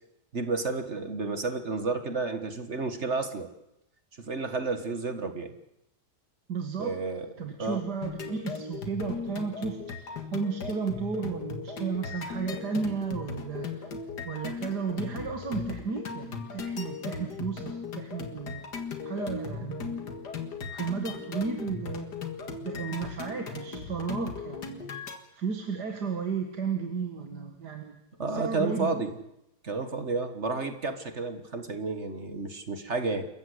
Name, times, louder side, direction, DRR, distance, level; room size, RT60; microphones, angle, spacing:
voice 1, 0.3-3.5 4.2-5.5 6.8-7.8 28.2-29.1 29.6-33.3, right 3 dB, 40° right, 9 dB, 1.7 m, -31 dB
voice 2, 6.5-6.9 7.4-13.9 14.3-18.6 19.1-20.3 20.7-22.1 22.6-24.9 25.3-28.0 28.3-29.1, right 5 dB, 70° right, 5 dB, 2.3 m, -33 dB
sound 1, 8.0-25.2, left 5 dB, 70° left, 2.4 m, -37 dB
27.5 x 14.5 x 8.0 m, 0.86 s
omnidirectional pair, 1.9 m